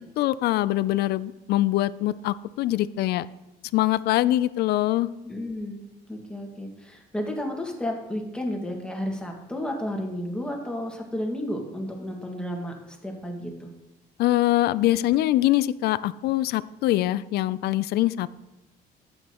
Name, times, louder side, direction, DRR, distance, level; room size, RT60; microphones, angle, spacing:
voice 1, 0.2-3.3 3.7-5.1 14.2-18.3, left 15 dB, 70° left, 17 dB, 0.4 m, -23 dB
voice 2, 5.2-13.7, left 1 dB, 5° left, 1 dB, 1.8 m, -32 dB
12.5 x 8.2 x 3.0 m, 0.97 s
cardioid pair, 110°, 17 cm